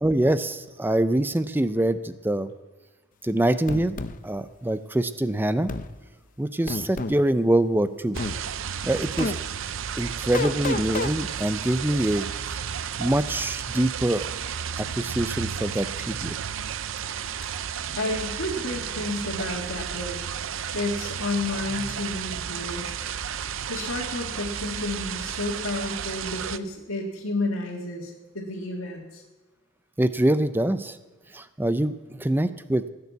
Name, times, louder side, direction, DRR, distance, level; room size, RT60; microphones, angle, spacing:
voice 1, 0.0-2.5 3.2-4.0 4.2-5.7 6.4-8.2 8.8-9.4 10.0-12.3 12.5-12.7 13.0-14.2 14.8-16.4 30.0-31.0 31.3-32.9, right 1 dB, 10° right, 12 dB, 0.5 m, -24 dB
sound 1, 3.7-4.2 5.7-5.9 6.7-7.2 8.2-8.4 9.2-9.4 10.3-11.1, left 3 dB, 40° left, 0.6 m, -29 dB
sound 2, 8.1-26.6, right 8 dB, 75° right, 0.5 m, -33 dB
voice 2, 18.0-20.2 20.7-22.9 23.7-29.2, left 2 dB, 90° left, -4 dB, 2.0 m, -31 dB
16.5 x 6.8 x 8.3 m, 1.2 s
head